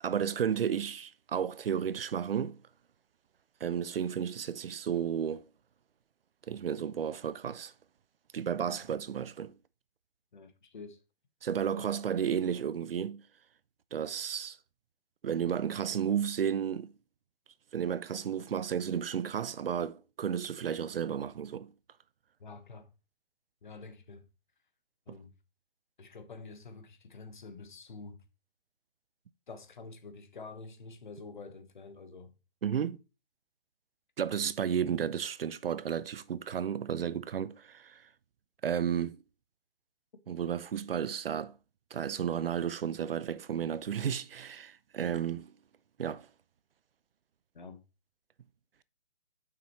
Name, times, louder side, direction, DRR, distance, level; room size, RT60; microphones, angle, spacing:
voice 1, 0.0-2.6 3.6-5.4 6.5-7.7 8.3-9.5 11.4-13.2 13.9-14.6 15.2-16.9 17.7-21.7 32.6-33.0 34.2-38.0 38.6-39.2 40.3-41.5 41.9-45.5 46.0-46.3, right 8 dB, 75° right, 0.6 m, -32 dB
voice 2, 10.3-11.0 11.8-11.9 22.4-22.9 23.6-24.2 25.1-25.3 26.0-28.2 29.5-32.3 47.5-47.8, left 4 dB, 55° left, 1.1 m, -48 dB
7.2 x 6.0 x 3.0 m
hypercardioid pair, 180°, 29 cm